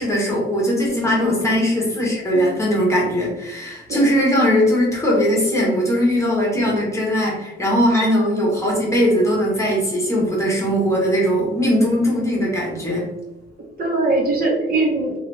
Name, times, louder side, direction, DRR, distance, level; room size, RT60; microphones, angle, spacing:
voice 1, 0.0-13.1, equal, 15° left, -4 dB, 1.3 m, -19 dB
voice 2, 1.2-1.6 2.3-2.4 3.9-4.2 6.5-6.7 7.9-8.1 13.8-15.1, right 2 dB, 45° right, -2 dB, 1.1 m, -22 dB
2.9 x 2.6 x 3.3 m, 0.99 s
cardioid pair, 90°, 20 cm